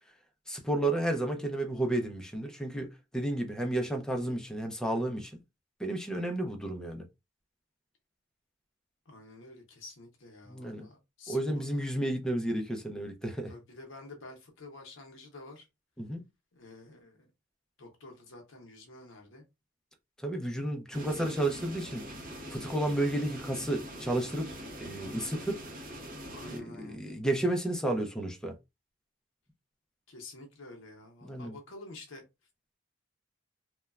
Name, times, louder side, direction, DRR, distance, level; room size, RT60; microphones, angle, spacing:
voice 1, 0.5-5.3 5.8-7.1 10.5-10.9 11.3-13.5 16.0-16.2 20.2-22.0 22.5-24.5 24.8-25.6 26.5-28.5 31.2-31.5, right 1 dB, 5° left, 0.4 m, -32 dB
voice 2, 9.1-11.9 13.5-15.7 16.5-17.3 17.8-19.4 26.3-27.0 30.1-32.2, left 2 dB, 65° left, 0.7 m, -49 dB
sound 1, 20.9-26.6, equal, 45° right, 0.7 m, -43 dB
3.0 x 2.2 x 2.3 m
head